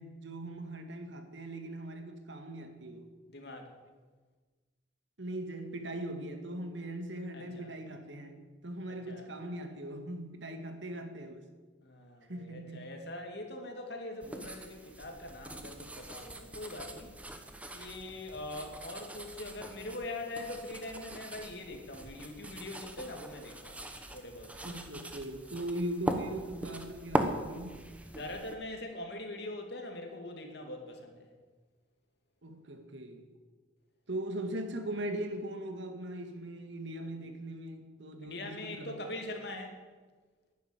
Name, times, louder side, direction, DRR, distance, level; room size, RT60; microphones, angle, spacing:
voice 1, 0.0-3.1 5.2-11.4 12.3-13.0 24.6-27.8 32.4-33.3 34.1-38.9, right 1 dB, 75° right, 2.0 m, -40 dB
voice 2, 3.3-3.7 7.3-7.7 8.9-9.3 11.8-17.1 17.7-24.5 28.1-31.3 38.2-39.8, left 2 dB, 60° left, 2.6 m, -42 dB
sound 1, 14.2-28.5, right 1 dB, 5° right, 1.0 m, -40 dB
11.5 x 10.5 x 9.2 m
head